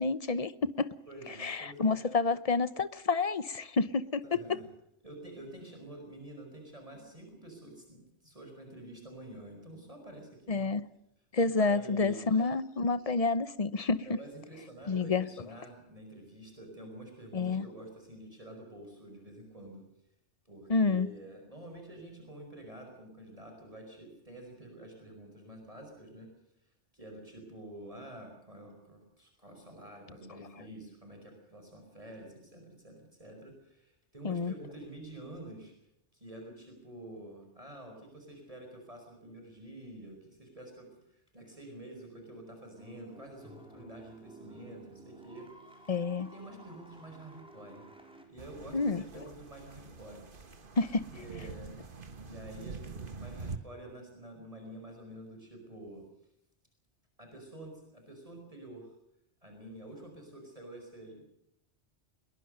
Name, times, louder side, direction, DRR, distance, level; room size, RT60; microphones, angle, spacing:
voice 1, 0.0-0.9 1.4-4.2 10.5-10.8 11.3-14.0 14.9-15.3 17.3-17.7 20.7-21.1 34.2-34.5 45.9-46.3 48.7-49.0 50.8-51.1, left 4 dB, 35° left, 0.9 m, -29 dB
voice 2, 1.1-1.9 4.2-4.6 5.0-10.6 11.6-12.5 14.1-19.8 20.5-26.3 26.6-35.7 36.1-45.9 46.2-47.9 48.3-50.3 50.5-50.6 51.1-51.8 52.2-56.0 57.2-58.9 59.4-61.2, right 1 dB, 30° right, 5.5 m, -48 dB
sound 1, 42.7-48.3, right 2 dB, 5° right, 4.1 m, -53 dB
sound 2, 48.4-53.6, right 4 dB, 50° right, 1.6 m, -45 dB
22.0 x 21.5 x 6.6 m
omnidirectional pair, 1.2 m